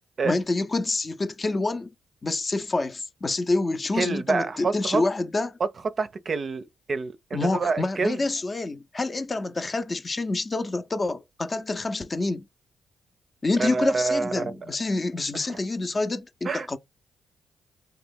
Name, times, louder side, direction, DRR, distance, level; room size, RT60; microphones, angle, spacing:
voice 1, 0.2-1.9 2.2-5.6 7.3-12.4 13.4-16.8, left 2 dB, 35° left, 0.5 m, -27 dB
voice 2, 3.9-5.0 5.6-5.7 6.0-8.2 13.6-14.6 15.3-15.6 16.4-16.7, right 4 dB, 50° right, 0.5 m, -27 dB
2.9 x 2.2 x 3.4 m
supercardioid pair, 50°, 0 cm